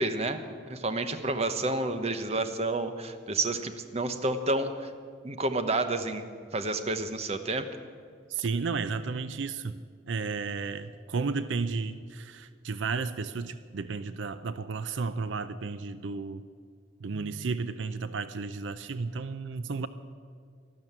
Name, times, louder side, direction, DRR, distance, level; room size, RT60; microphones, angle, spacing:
voice 1, 0.0-4.9 5.2-6.2 6.5-7.7, right 2 dB, 35° right, 9 dB, 0.9 m, -30 dB
voice 2, 8.3-9.8 10.1-16.4 17.0-19.9, right 4 dB, 80° right, 13 dB, 0.5 m, -33 dB
12.5 x 12.5 x 8.8 m, 2.1 s
head